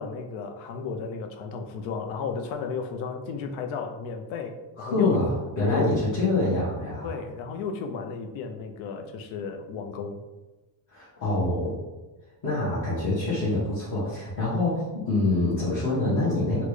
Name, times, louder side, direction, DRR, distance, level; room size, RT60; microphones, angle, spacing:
voice 1, 0.0-5.2 5.7-5.9 7.0-10.2, left 5 dB, 75° left, 5 dB, 0.6 m, -33 dB
voice 2, 4.8-5.3 5.6-7.1 10.9-11.8 12.4-16.6, left 2 dB, 40° left, -10 dB, 1.1 m, -25 dB
4.2 x 2.2 x 3.1 m, 1.1 s
cardioid pair, 165°, 48 cm